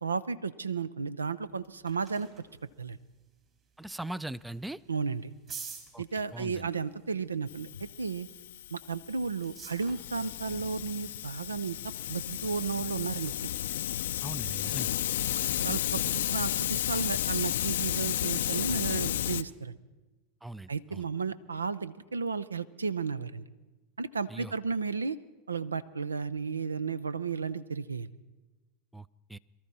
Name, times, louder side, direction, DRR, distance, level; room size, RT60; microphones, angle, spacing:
voice 1, 0.0-2.3 2.8-3.0 4.9-5.3 6.0-8.3 8.7-11.8 12.1-13.5 15.6-19.8 20.7-23.4 24.0-25.2 25.5-28.1, right 5 dB, 90° right, 17 dB, 0.5 m, -33 dB
sound 1, 1.4-14.0, right 6 dB, 35° right, 3.4 m, -52 dB
voice 2, 3.8-4.8 5.9-6.0 6.3-6.7 14.2-14.9 20.4-21.0 24.3-24.5 28.9-29.4, right 2 dB, 5° right, 20 dB, 0.4 m, -40 dB
Hiss, 7.5-19.4, left 12 dB, 70° left, 0.4 m, -33 dB
23.0 x 13.0 x 4.2 m, 1.2 s
hypercardioid pair, 90°, 0 cm